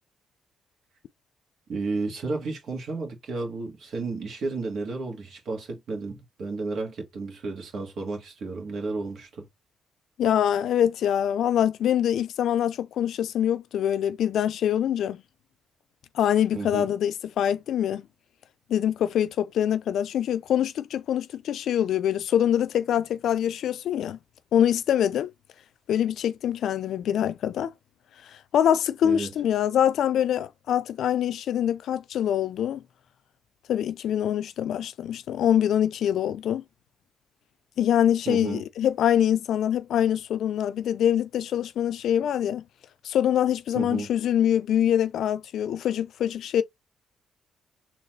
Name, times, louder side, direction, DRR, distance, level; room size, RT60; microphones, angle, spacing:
voice 1, 1.7-9.5 16.5-16.9 29.0-29.3 38.2-38.6 43.7-44.1, right 3 dB, 65° right, 1.6 m, -32 dB
voice 2, 10.2-15.2 16.1-18.0 18.7-24.2 24.5-25.3 25.9-27.7 28.3-32.8 33.7-36.6 37.8-42.6 43.0-46.6, left 10 dB, 70° left, 0.4 m, -24 dB
3.9 x 3.0 x 3.1 m
cardioid pair, 90°, 0 cm